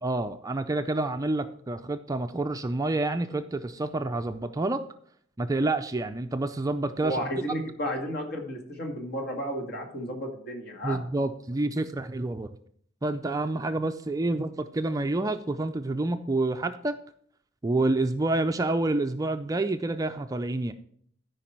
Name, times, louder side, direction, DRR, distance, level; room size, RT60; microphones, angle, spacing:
voice 1, 0.0-4.8 5.4-7.2 10.8-12.5 13.0-17.0 17.6-20.7, right 2 dB, 15° right, 8 dB, 0.4 m, -28 dB
voice 2, 7.0-11.0, equal, 55° left, 2 dB, 2.0 m, -33 dB
13.0 x 5.3 x 4.4 m, 0.62 s
head